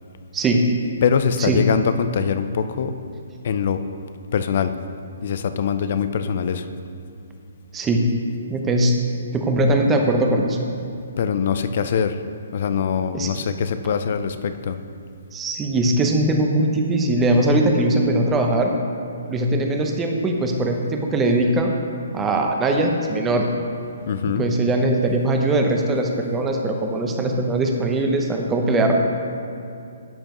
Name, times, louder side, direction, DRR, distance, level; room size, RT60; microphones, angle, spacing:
voice 1, 0.3-0.7 1.4-1.6 7.7-8.1 8.5-9.0 9.3-10.6 13.1-13.3 15.3-18.7 19.3-21.7 22.1-23.5 24.3-28.9, right 1 dB, 15° right, 2 dB, 0.8 m, -20 dB
voice 2, 1.0-2.9 3.4-3.8 4.3-4.7 5.2-6.7 11.2-12.2 12.5-14.8 24.1-24.5, left 7 dB, 50° left, 10 dB, 0.5 m, -23 dB
12.0 x 8.8 x 3.0 m, 2.4 s
hypercardioid pair, 155°, 0 cm